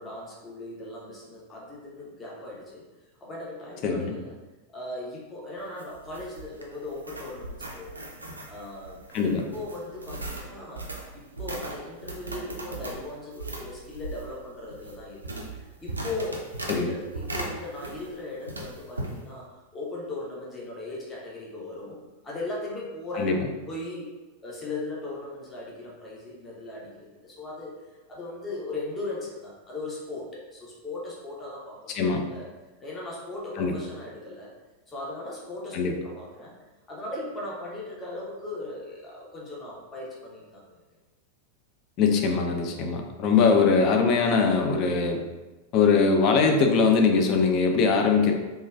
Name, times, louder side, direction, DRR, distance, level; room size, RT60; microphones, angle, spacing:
voice 1, 0.0-2.8 3.2-4.4 4.7-8.1 8.5-16.5 16.7-23.4 23.7-24.1 24.4-32.5 32.8-34.5 34.9-36.6 36.9-40.8, left 2 dB, 20° left, -4 dB, 0.7 m, -38 dB
voice 2, 3.8-4.1 9.1-9.5 16.7-16.9 23.2-23.3 31.9-32.2 33.6-33.8 35.7-35.9 42.0-45.2 45.7-48.3, left 5 dB, 40° left, 3 dB, 0.4 m, -21 dB
sound 1, 5.6-18.2 18.5-19.2, right 2 dB, 80° right, 0.4 m, -38 dB
3.1 x 2.1 x 2.2 m, 1.1 s
figure-of-eight pair, 90°, 0 cm